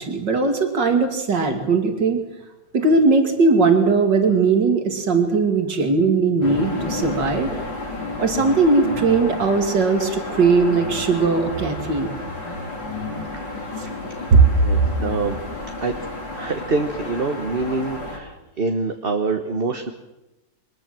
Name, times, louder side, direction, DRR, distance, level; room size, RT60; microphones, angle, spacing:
voice 1, 0.0-2.2 2.7-7.5 8.2-12.1 14.3-14.4, right 4 dB, 70° right, 6 dB, 3.4 m, -19 dB
sound 1, 6.4-18.2, left 2 dB, 85° left, 6.0 m, -31 dB
voice 2, 14.6-15.4 15.8-15.9 16.4-19.9, right 3 dB, 35° right, 6 dB, 1.4 m, -25 dB
23.5 x 20.0 x 7.7 m, 0.98 s
omnidirectional pair, 2.0 m